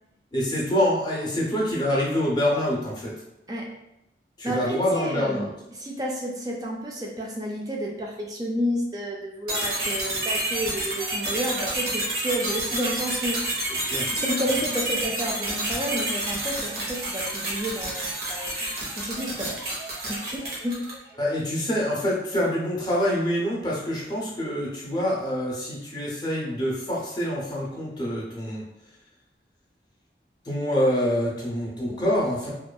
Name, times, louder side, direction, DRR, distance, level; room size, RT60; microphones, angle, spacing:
voice 1, 0.3-3.1 4.4-5.5 11.6-11.7 13.8-14.2 21.2-28.6 30.5-32.5, equal, 25° left, -5 dB, 0.6 m, -26 dB
voice 2, 4.4-13.5 14.1-19.5 20.1-20.8 31.9-32.5, equal, 20° right, -1 dB, 0.3 m, -31 dB
sound 1, 9.5-21.1, right 1 dB, 60° right, 0.8 m, -29 dB
2.5 x 2.3 x 2.2 m, 0.87 s
head